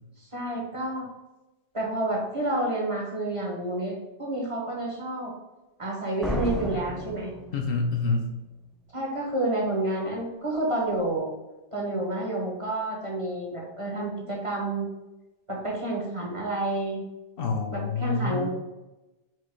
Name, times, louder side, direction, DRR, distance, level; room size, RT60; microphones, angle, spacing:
voice 1, 0.2-1.1 1.7-5.3 5.8-7.3 8.9-11.3 11.7-14.9 15.5-17.0 17.7-18.5, right 2 dB, 35° right, -2 dB, 0.8 m, -29 dB
Slam, 6.2-8.1, equal, ahead, 0.4 m, -32 dB
voice 2, 7.5-8.3 17.4-18.5, left 4 dB, 65° left, 2 dB, 0.9 m, -27 dB
4.6 x 2.2 x 4.4 m, 1.0 s
omnidirectional pair, 1.1 m